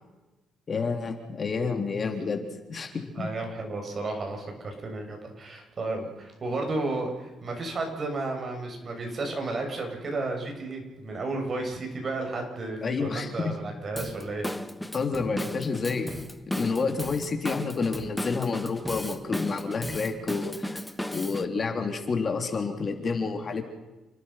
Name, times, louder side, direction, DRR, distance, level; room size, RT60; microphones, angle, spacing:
voice 1, 0.7-3.3 12.8-13.5 14.9-16.1 16.5-20.8 21.1-23.6, left 4 dB, 40° left, 5 dB, 3.6 m, -29 dB
voice 2, 3.2-14.5, right 2 dB, 45° right, 3 dB, 7.5 m, -33 dB
Drum kit / Drum, 14.0-21.5, left 1 dB, 5° left, 1.4 m, -35 dB
29.5 x 20.0 x 5.9 m, 1.1 s
cardioid pair, 90°, 0 cm